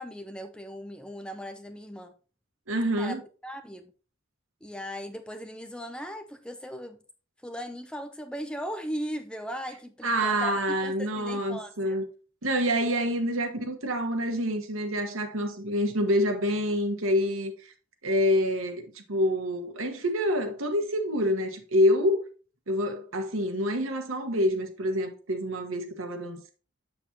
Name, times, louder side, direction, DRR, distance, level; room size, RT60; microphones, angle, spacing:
voice 1, 0.0-2.1 3.0-3.1 3.4-3.9 4.6-7.0 7.4-10.5 10.8-12.0, equal, 5° left, 0.5 m, -38 dB
voice 2, 2.7-3.2 10.0-12.1 12.4-17.7 18.0-22.2 22.7-26.5, equal, 85° right, 1.2 m, -27 dB
7.1 x 7.0 x 2.7 m
head